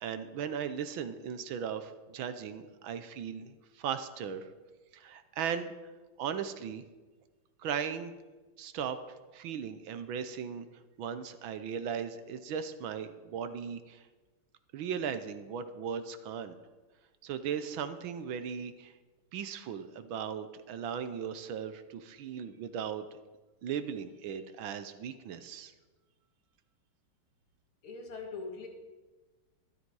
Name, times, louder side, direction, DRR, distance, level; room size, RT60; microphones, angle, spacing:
voice 1, 0.0-4.5 4.9-5.7 6.2-6.8 7.6-8.1 8.6-9.0 9.3-10.7 11.0-14.0 14.7-16.6 17.2-18.9 19.3-23.1 23.6-25.7, right 7 dB, 70° right, 11 dB, 1.5 m, -37 dB
voice 2, 27.8-28.7, left 4 dB, 75° left, 2 dB, 2.7 m, -41 dB
13.0 x 12.0 x 4.7 m, 1.2 s
omnidirectional pair, 2.4 m